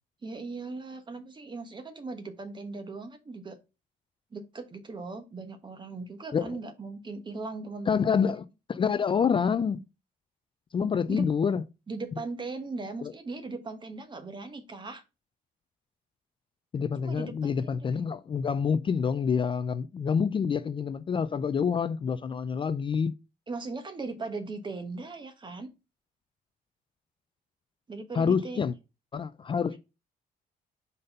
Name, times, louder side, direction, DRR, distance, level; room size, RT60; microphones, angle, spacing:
voice 1, 0.2-3.6 4.3-8.3 11.1-11.2 11.9-15.0 17.0-17.9 18.3-18.5 23.5-25.7 27.9-28.7, right 3 dB, 30° right, 1.3 m, -39 dB
voice 2, 7.9-9.8 10.7-11.6 13.0-13.1 16.7-23.2 28.1-28.7 29.1-29.8, left 6 dB, 30° left, 0.4 m, -27 dB
5.2 x 4.1 x 5.4 m
cardioid pair, 115°, 16 cm